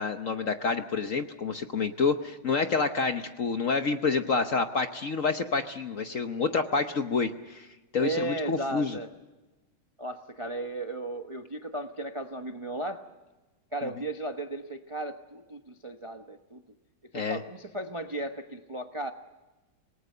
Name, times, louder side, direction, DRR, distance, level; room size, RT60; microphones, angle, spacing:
voice 1, 0.0-7.7 7.9-9.0 17.1-17.4, left 4 dB, 50° left, 7 dB, 1.0 m, -28 dB
voice 2, 8.0-9.1 10.0-13.0 13.7-16.6 17.1-19.1, right 2 dB, 30° right, 5 dB, 0.5 m, -35 dB
27.0 x 19.5 x 6.7 m, 1.2 s
omnidirectional pair, 2.3 m